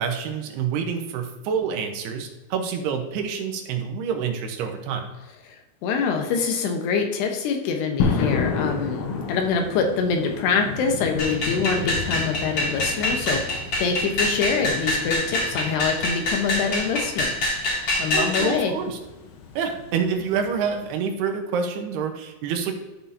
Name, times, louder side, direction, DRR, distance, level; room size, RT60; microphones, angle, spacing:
voice 1, 0.0-5.1 18.1-19.0 19.6-22.7, right 6 dB, 80° right, 4 dB, 2.9 m, -27 dB
voice 2, 5.8-17.3 18.0-18.7, left 5 dB, 85° left, 3 dB, 3.2 m, -25 dB
sound 1, 8.0-20.9, left 5 dB, 70° left, 2.0 m, -32 dB
sound 2, 11.2-18.5, left 1 dB, 40° left, 2.9 m, -25 dB
12.5 x 5.8 x 2.7 m, 1.1 s
omnidirectional pair, 4.6 m